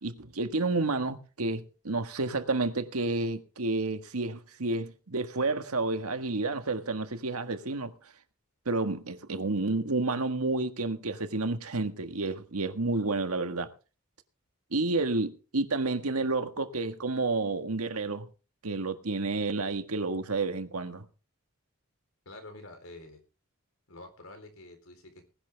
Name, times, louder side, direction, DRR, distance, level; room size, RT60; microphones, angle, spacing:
voice 1, 0.0-7.9 8.6-13.7 14.7-18.3 18.6-21.1, right 3 dB, 85° right, 1.6 m, -30 dB
voice 2, 22.3-23.2 23.9-25.3, left 2 dB, 70° left, 3.9 m, -48 dB
19.5 x 11.0 x 3.4 m
head